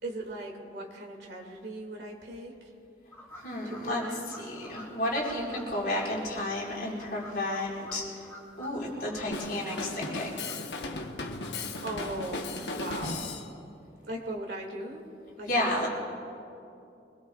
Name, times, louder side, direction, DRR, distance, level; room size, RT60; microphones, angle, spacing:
voice 1, 0.0-2.5 3.6-4.6 8.7-9.3 11.8-13.4 14.0-15.0 15.4-15.7, right 1 dB, 75° right, 0 dB, 2.4 m, -39 dB
sound 1, 3.1-5.6 6.0-6.1 6.8-8.7 9.0-10.6 10.9-11.8, left 2 dB, 15° left, 2.3 m, -49 dB
voice 2, 3.3-4.0 4.3-8.0 8.6-10.4 15.5-15.9, left 1 dB, 55° left, -5 dB, 4.8 m, -32 dB
Drum kit, 9.3-13.5, left 2 dB, 75° left, 1.2 m, -36 dB
25.0 x 21.0 x 2.4 m, 2.6 s
head